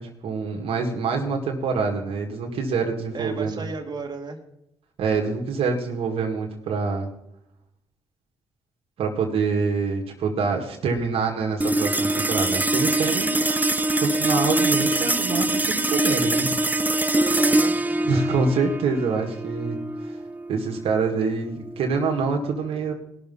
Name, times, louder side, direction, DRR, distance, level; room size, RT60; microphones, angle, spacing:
voice 1, 0.0-3.6 5.0-7.1 9.0-13.4 14.0-16.5 16.9-17.2 18.0-20.2 20.5-22.9, right 4 dB, 75° right, 0 dB, 1.9 m, -26 dB
voice 2, 3.1-4.4 17.2-18.3, right 4 dB, 45° right, 3 dB, 2.2 m, -35 dB
sound 1, 11.6-22.2, right 1 dB, 15° right, 0.8 m, -24 dB
19.0 x 6.5 x 5.5 m, 0.79 s
supercardioid pair, 60°, 10 cm